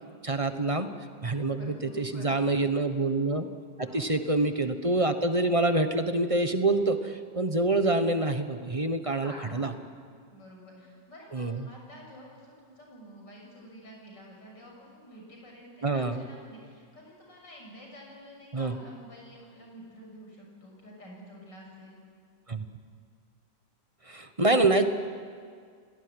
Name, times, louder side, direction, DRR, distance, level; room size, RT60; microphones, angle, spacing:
voice 1, 0.2-0.9 1.2-3.5 3.8-9.7 11.3-11.7 15.8-16.2 18.5-18.8 22.5-22.6 24.1-24.8, right 2 dB, 20° right, 8 dB, 1.1 m, -26 dB
voice 2, 1.5-2.4 3.8-4.1 9.2-9.8 10.3-22.0, equal, 80° left, -1 dB, 7.3 m, -49 dB
29.5 x 18.5 x 9.9 m, 2.1 s
omnidirectional pair, 1.9 m